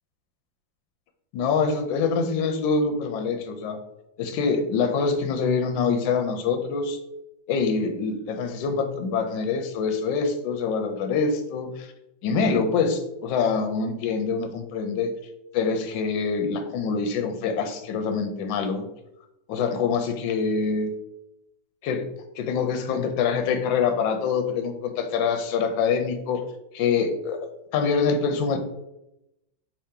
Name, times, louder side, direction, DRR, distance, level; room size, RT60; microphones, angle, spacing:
voice 1, 1.3-3.8 4.2-7.0 7.5-11.9 12.2-15.1 15.5-18.8 19.5-20.9 21.8-22.1 22.4-26.4 26.7-27.4 27.7-28.6, left 5 dB, 75° left, 6 dB, 1.3 m, -25 dB
4.8 x 2.8 x 3.6 m, 0.88 s
omnidirectional pair, 2.1 m